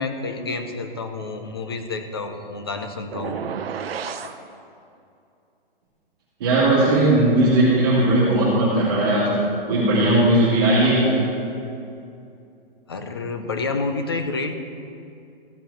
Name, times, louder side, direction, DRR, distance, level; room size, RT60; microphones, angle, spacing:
voice 1, 0.0-3.4 4.1-4.3 12.9-14.5, left 3 dB, 25° left, 6 dB, 0.5 m, -29 dB
sound 1, 3.1-4.4, right 7 dB, 75° right, 0.8 m, -31 dB
voice 2, 6.4-11.1, right 1 dB, 25° right, -12 dB, 2.7 m, -18 dB
15.5 x 6.3 x 4.2 m, 2.6 s
hypercardioid pair, 180°, 30 cm